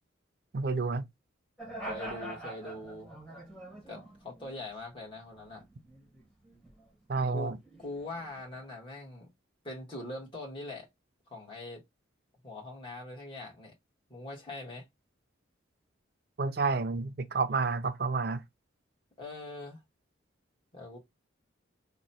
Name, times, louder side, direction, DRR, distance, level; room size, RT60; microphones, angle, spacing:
voice 1, 0.5-1.0 7.1-7.6 16.4-18.4, right 4 dB, 50° right, 0.5 m, -30 dB
sound 1, 1.6-4.9 5.3-6.9 7.2-8.7, right 1 dB, 5° left, 1.2 m, -45 dB
voice 2, 1.8-3.1 3.9-5.7 7.3-7.5 7.8-9.3 9.6-10.9 11.3-11.8 12.4-13.7 14.1-14.8 19.2-19.8 20.7-21.0, left 2 dB, 25° left, 1.3 m, -42 dB
3.0 x 2.2 x 4.0 m
head